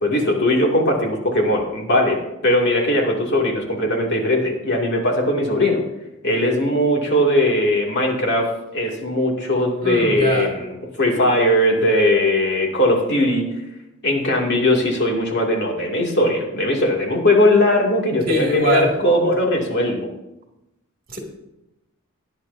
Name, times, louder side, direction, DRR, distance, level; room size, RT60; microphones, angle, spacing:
voice 1, 0.0-2.2 2.4-5.8 6.2-8.5 8.7-10.7 11.0-13.4 14.0-20.1, left 1 dB, 55° left, 0 dB, 2.4 m, -19 dB
voice 2, 9.8-10.6 18.3-18.9 21.1-21.2, right 1 dB, 45° right, 0 dB, 2.4 m, -21 dB
19.0 x 9.9 x 2.7 m, 0.92 s
head